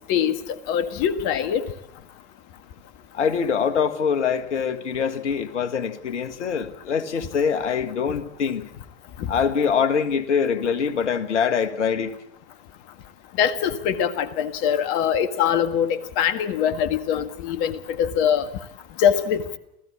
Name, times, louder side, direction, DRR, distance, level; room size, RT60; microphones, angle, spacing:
voice 1, 0.7-1.7 13.4-18.5 19.0-19.6, left 8 dB, 60° left, 11 dB, 1.8 m, -23 dB
voice 2, 3.1-8.7 9.3-12.1, left 6 dB, 85° left, 9 dB, 1.8 m, -24 dB
28.0 x 15.5 x 8.6 m, 0.80 s
hypercardioid pair, 80°, 34 cm